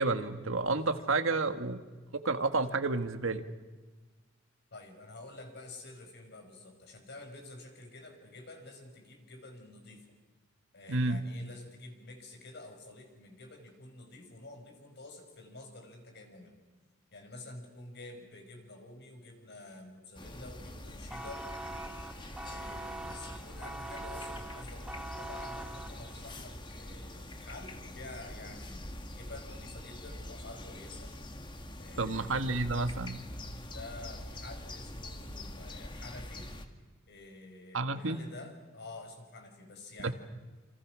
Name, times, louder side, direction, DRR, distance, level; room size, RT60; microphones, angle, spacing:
voice 1, 0.0-1.8 2.1-3.4 10.9-11.2 32.0-33.2 37.7-38.2 40.0-40.1, right 3 dB, 75° right, 8 dB, 1.6 m, -30 dB
voice 2, 4.7-10.0 10.7-16.6 17.1-21.5 22.4-31.2 31.8-32.4 33.6-36.5 37.1-40.2, left 2 dB, 55° left, 4 dB, 5.6 m, -49 dB
sound 1, 20.2-36.7, left 1 dB, 25° left, 1.9 m, -44 dB
sound 2, 21.1-26.4, right 2 dB, 5° right, 1.2 m, -43 dB
28.5 x 27.0 x 6.3 m, 1.3 s
head